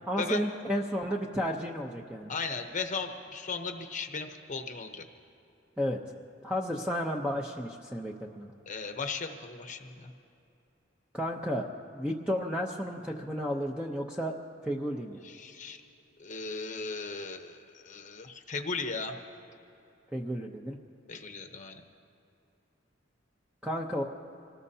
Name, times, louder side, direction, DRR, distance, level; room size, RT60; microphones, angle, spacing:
voice 1, 0.1-2.3 5.8-6.0 6.4-8.5 11.1-11.7 11.9-14.4 14.6-15.2 20.1-20.8 23.6-24.0, equal, 5° right, 0 dB, 0.7 m, -32 dB
voice 2, 2.3-5.0 8.7-10.1 15.2-15.8 16.2-19.1 21.1-21.8, left 4 dB, 40° left, 5 dB, 0.9 m, -37 dB
25.5 x 19.0 x 2.8 m, 2.8 s
head